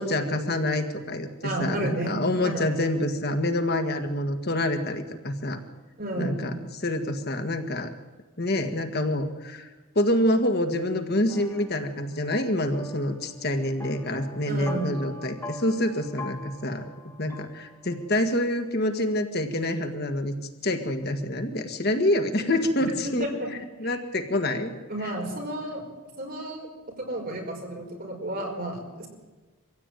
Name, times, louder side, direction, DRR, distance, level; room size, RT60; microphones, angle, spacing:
voice 1, 0.0-5.6 6.2-7.9 8.4-9.7 10.0-16.8 17.2-20.3 20.6-23.3 23.8-24.7 25.0-25.1, left 1 dB, 45° left, 6 dB, 1.8 m, -27 dB
voice 2, 1.4-2.6 6.0-6.6 14.5-14.9 23.0-23.5 23.8-24.0 24.9-25.8 26.2-26.7 27.0-29.1, right 1 dB, 40° right, 2 dB, 5.4 m, -32 dB
sound 1, 11.3-18.3, left 2 dB, 10° left, 1.3 m, -43 dB
24.5 x 16.0 x 9.2 m, 1.2 s
head